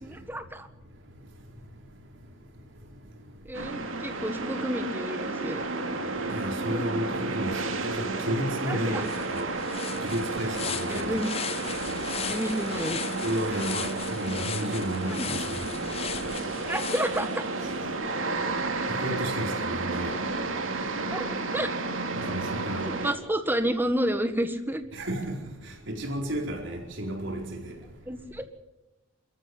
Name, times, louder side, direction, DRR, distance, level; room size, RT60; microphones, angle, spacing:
voice 1, 0.0-0.7 3.4-5.6 6.2-6.4 6.7-6.9 8.6-9.1 10.9-11.3 12.3-13.0 15.0-15.3 16.6-17.4 21.1-21.7 22.9-24.8 28.1-28.4, right 1 dB, 10° right, 1.6 m, -30 dB
sound 1, 3.5-23.1, right 3 dB, 90° right, 2.7 m, -32 dB
voice 2, 6.3-9.5 10.0-11.1 13.2-15.7 18.9-20.1 22.3-22.9 24.9-25.4 25.9-27.7, right 1 dB, 65° right, 4.6 m, -32 dB
sound 2, 8.6-8.7 9.0-17.8, left 8 dB, 30° left, 0.6 m, -38 dB
24.5 x 14.0 x 7.9 m
head